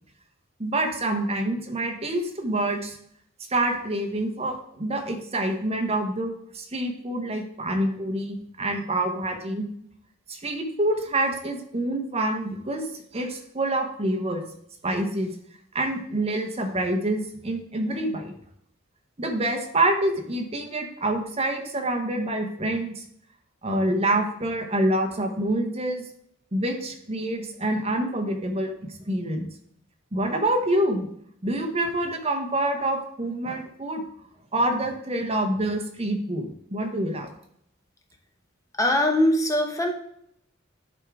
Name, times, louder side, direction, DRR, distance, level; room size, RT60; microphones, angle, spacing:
voice 1, 0.6-3.0 3.5-9.6 10.3-12.9 13.1-14.4 14.8-15.3 15.7-18.3 19.2-23.0 23.6-26.0 26.5-29.5 30.1-31.1 31.4-34.0 34.5-37.3, right 1 dB, 30° right, 4 dB, 1.1 m, -26 dB
voice 2, 38.8-39.9, left 1 dB, 15° left, 3 dB, 1.0 m, -21 dB
10.5 x 3.7 x 4.8 m, 0.70 s
head